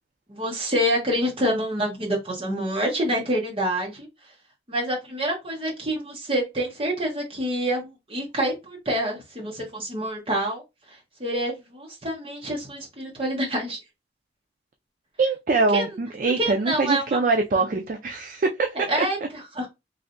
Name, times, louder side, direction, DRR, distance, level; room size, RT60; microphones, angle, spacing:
voice 1, 0.3-4.1 4.7-10.6 10.9-13.8 15.7-15.8 16.4-17.2 18.7-19.7, equal, 30° right, 1.1 m, -27 dB
voice 2, 15.2-18.9, right 3 dB, 45° right, 0.4 m, -23 dB
3.2 x 2.6 x 2.5 m
head